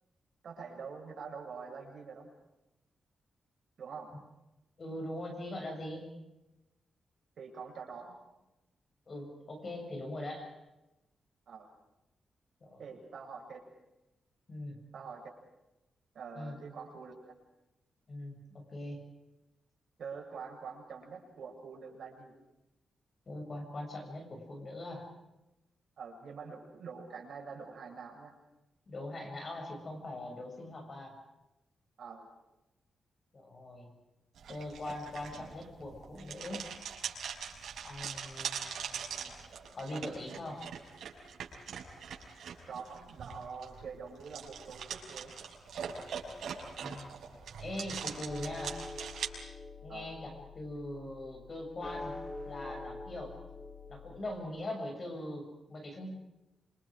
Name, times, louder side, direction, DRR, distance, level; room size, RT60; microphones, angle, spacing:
voice 1, 0.4-2.3 3.8-4.1 7.4-8.2 11.5-11.7 12.8-13.6 14.9-15.3 16.1-17.1 20.0-22.3 26.0-28.3 32.0-32.3 42.7-45.3 49.9-50.1, right 5 dB, 60° right, 1 dB, 7.2 m, -45 dB
voice 2, 4.8-6.0 9.1-10.5 12.6-12.8 14.5-14.8 16.4-16.6 18.1-19.0 23.3-25.1 28.9-31.1 33.3-33.9 34.5-36.6 37.8-39.4 39.7-40.6 46.7-47.1 47.6-48.8 49.8-52.2 52.5-53.4 53.9-56.1, left 1 dB, 30° left, 2 dB, 7.2 m, -41 dB
sound 1, 34.4-49.3, right 7 dB, 90° right, 5.9 m, -42 dB
sound 2, 48.3-54.2, left 2 dB, 10° left, 4.1 m, -45 dB
27.5 x 27.5 x 5.1 m, 0.98 s
wide cardioid pair, 175°, 0 cm